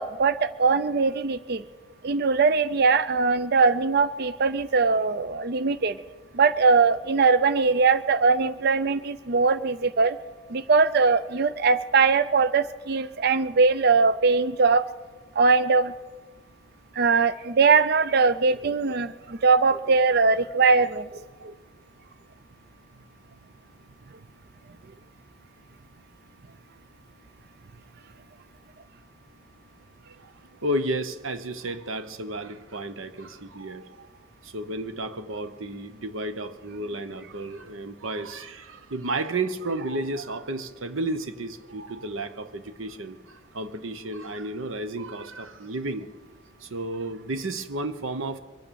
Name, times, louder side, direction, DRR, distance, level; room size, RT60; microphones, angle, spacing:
voice 1, 0.0-1.6 2.0-6.0 6.3-10.2 10.5-14.9 15.4-15.9 17.0-21.5, right 4 dB, 50° right, 15 dB, 0.4 m, -21 dB
voice 2, 30.6-34.1 34.4-46.1 46.6-48.4, right 2 dB, 75° right, 11 dB, 1.0 m, -32 dB
23.0 x 8.9 x 7.0 m, 1.3 s
head